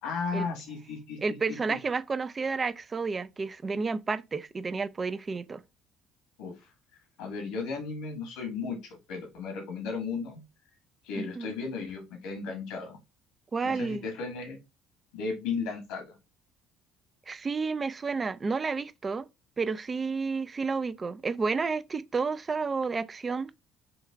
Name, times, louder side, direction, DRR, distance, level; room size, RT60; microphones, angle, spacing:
voice 1, 0.0-1.2 1.5-1.8 6.4-6.5 7.2-10.4 11.0-13.0 13.6-14.6 15.1-16.1, left 4 dB, 90° left, 1.5 m, -35 dB
voice 2, 1.2-5.6 11.1-11.5 13.5-14.0 17.3-19.3 19.6-23.5, right 4 dB, 30° right, 0.4 m, -31 dB
6.2 x 2.3 x 3.5 m
supercardioid pair, 80°, 0 cm